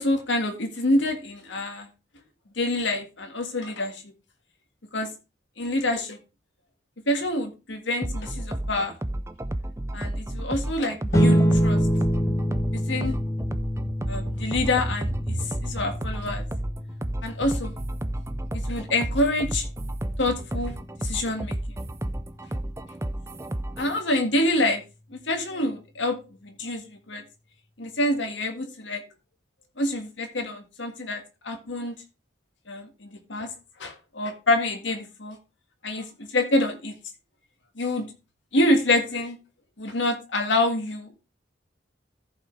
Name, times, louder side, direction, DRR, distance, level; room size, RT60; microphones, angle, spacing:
voice 1, 0.0-1.9 2.6-4.0 4.9-5.1 5.6-6.2 7.1-8.9 9.9-11.8 12.7-13.1 14.1-16.4 17.2-17.8 18.7-19.7 20.2-21.6 23.8-24.8 25.1-26.2 26.4-27.2 27.8-29.0 29.8-31.9 32.7-33.5 33.8-35.4 35.8-36.1 36.3-36.9 37.8-38.1 38.5-39.4 39.8-41.1, left 1 dB, 85° left, 4 dB, 1.8 m, -26 dB
sound 1, 8.0-24.0, right 1 dB, 15° right, 0.4 m, -32 dB
sound 2, 11.1-21.9, equal, 15° left, 0.7 m, -27 dB
14.5 x 5.6 x 3.3 m, 0.28 s
head